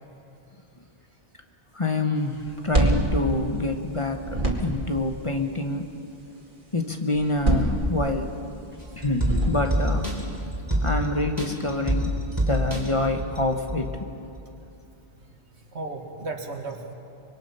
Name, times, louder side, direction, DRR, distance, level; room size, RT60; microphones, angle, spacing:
voice 1, 1.7-5.9 6.7-8.3 8.9-10.1 10.8-12.2 12.5-14.0, left 2 dB, 30° left, 4 dB, 1.3 m, -27 dB
sound 1, 2.5-3.9 4.2-5.0 7.2-8.4 9.1-9.9, right 1 dB, 50° right, 2.5 m, -25 dB
sound 2, 8.8-14.0 14.3-14.4, equal, 20° right, 3.5 m, -28 dB
voice 2, 15.2-16.9, right 3 dB, 75° right, 3 dB, 2.1 m, -36 dB
25.5 x 22.5 x 5.7 m, 2.7 s
omnidirectional pair, 1.1 m